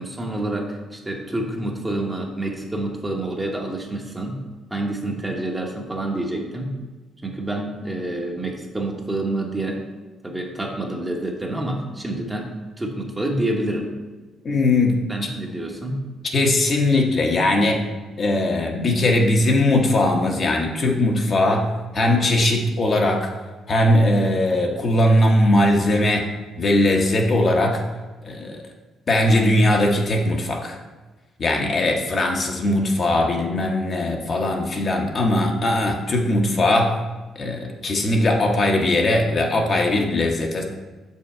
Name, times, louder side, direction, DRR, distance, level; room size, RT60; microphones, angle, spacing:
voice 1, 0.0-4.4 4.7-6.7 7.2-9.8 10.2-13.9 15.1-16.0, right 1 dB, 15° right, 1 dB, 1.0 m, -28 dB
voice 2, 14.4-15.0 16.3-17.8 18.2-21.7 21.9-23.3 23.7-26.3 26.6-27.8 28.2-28.6 29.1-30.7 31.4-37.0 37.4-40.6, left 1 dB, 40° left, 1 dB, 0.9 m, -19 dB
6.2 x 5.6 x 4.4 m, 1.3 s
cardioid pair, 125°, 0 cm